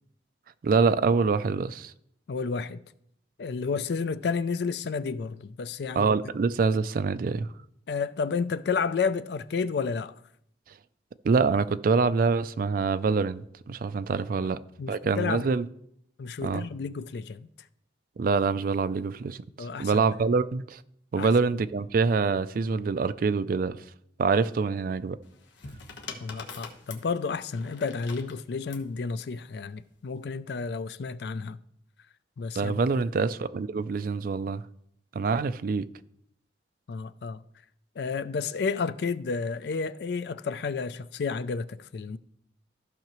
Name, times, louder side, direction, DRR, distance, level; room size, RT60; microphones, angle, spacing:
voice 1, 0.6-1.9 6.0-7.5 11.2-14.6 14.9-15.7 16.4-16.6 18.2-20.8 21.1-23.8 24.2-25.2 32.5-34.6 35.1-35.9, right 4 dB, 50° right, 0.3 m, -25 dB
voice 2, 2.3-2.8 3.4-6.1 7.9-10.1 14.8-15.5 16.2-17.5 19.6-20.1 21.2-21.3 26.2-31.6 32.4-32.8 36.9-37.4 38.0-42.2, left 5 dB, 65° left, 0.4 m, -31 dB
sound 1, 25.2-28.9 29.9-30.3, left 4 dB, 90° left, 1.2 m, -44 dB
14.5 x 5.7 x 3.0 m
head